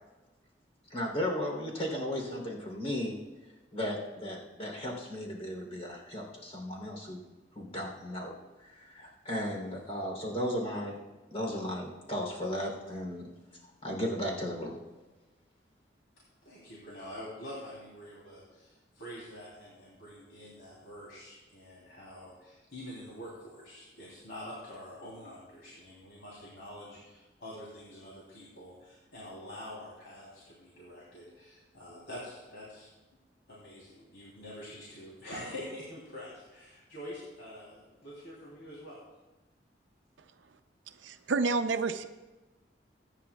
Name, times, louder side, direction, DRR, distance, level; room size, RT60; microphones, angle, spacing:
voice 1, 0.9-3.2 3.7-7.2 7.5-8.4 8.6-11.0 11.3-13.3 13.8-14.8, equal, 35° left, -1 dB, 3.2 m, -35 dB
voice 2, 16.4-32.9 33.5-39.0, left 1 dB, 85° left, -6 dB, 3.2 m, -46 dB
voice 3, 41.0-42.1, right 4 dB, 85° right, 9 dB, 0.6 m, -29 dB
23.0 x 9.8 x 2.3 m, 1.2 s
head